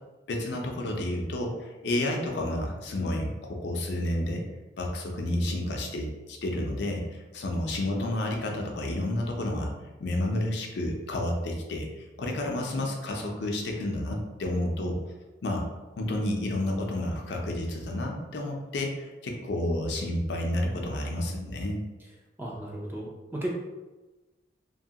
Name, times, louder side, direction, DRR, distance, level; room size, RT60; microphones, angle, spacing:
voice 1, 0.3-4.4 4.8-9.7 10.0-11.9 12.2-15.0 15.4-15.7 16.0-21.8, left 1 dB, 70° left, 1 dB, 0.5 m, -30 dB
voice 2, 22.4-23.5, right 1 dB, 10° right, -3 dB, 0.4 m, -34 dB
2.8 x 2.2 x 2.7 m, 1.1 s
head